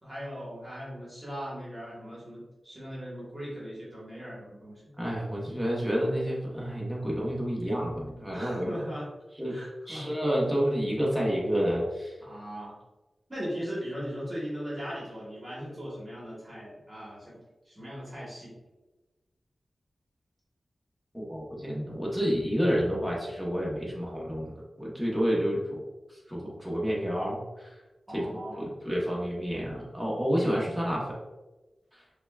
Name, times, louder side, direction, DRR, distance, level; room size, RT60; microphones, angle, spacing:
voice 1, 0.0-4.9 8.3-9.1 9.4-10.1 12.2-12.8 13.3-17.4 17.6-18.5 28.1-28.7, equal, 25° right, -7 dB, 1.4 m, -39 dB
voice 2, 5.0-8.7 9.4-9.6 9.9-12.1 21.1-24.5 24.8-25.8 26.3-27.7 28.1-31.2, equal, ahead, -5 dB, 1.0 m, -29 dB
5.8 x 2.3 x 2.3 m, 1.1 s
wide cardioid pair, 95°, 0 cm